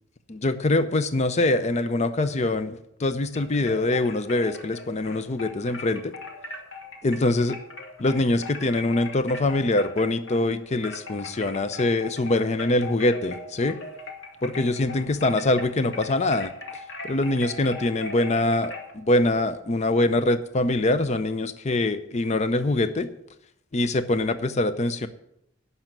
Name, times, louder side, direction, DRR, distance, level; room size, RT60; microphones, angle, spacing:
voice 1, 0.3-6.1 7.0-7.6 8.0-13.8 14.4-16.5 17.0-23.1 23.7-25.1, left 2 dB, 35° left, 12 dB, 0.6 m, -24 dB
sound 1, 3.3-10.5 10.8-18.9, left 3 dB, 70° left, 2.0 m, -39 dB
12.0 x 5.6 x 9.0 m, 0.78 s
head